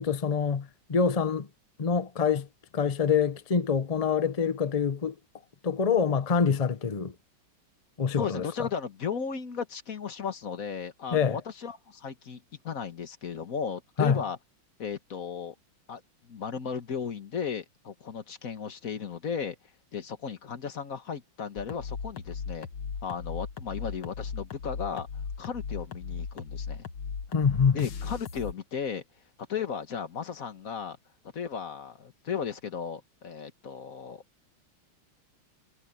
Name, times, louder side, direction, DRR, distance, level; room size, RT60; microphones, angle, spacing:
voice 1, 0.0-1.5 1.8-2.5 2.7-5.1 5.6-7.1 8.0-8.4 11.1-11.4 14.0-14.2 27.3-27.8, left 6 dB, 65° left, 0.3 m, -25 dB
voice 2, 8.2-14.4 14.8-15.5 15.9-19.6 19.9-22.7 23.0-25.1 25.4-26.9 27.7-29.0 29.5-31.0 31.3-34.2, left 6 dB, 45° left, 1.7 m, -35 dB
sound 1, 21.6-28.5, left 5 dB, 85° left, 2.3 m, -37 dB
omnidirectional pair, 2.2 m